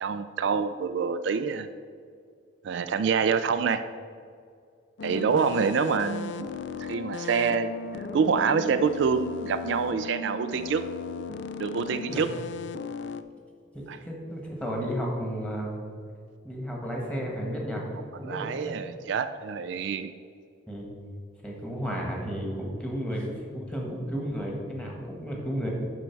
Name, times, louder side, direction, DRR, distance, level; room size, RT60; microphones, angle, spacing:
voice 1, 0.0-1.7 2.6-3.8 5.0-6.5 6.8-7.7 8.1-10.8 11.6-12.3 13.9-14.0 18.2-20.1, right 5 dB, 65° right, 10 dB, 0.3 m, -26 dB
sound 1, 5.0-13.2, left 5 dB, 60° left, 0.4 m, -37 dB
voice 2, 13.7-15.8 16.4-17.8 18.2-18.8 20.7-20.9 21.4-25.7, equal, 5° left, -2 dB, 1.5 m, -33 dB
11.5 x 4.5 x 4.6 m, 2.2 s
head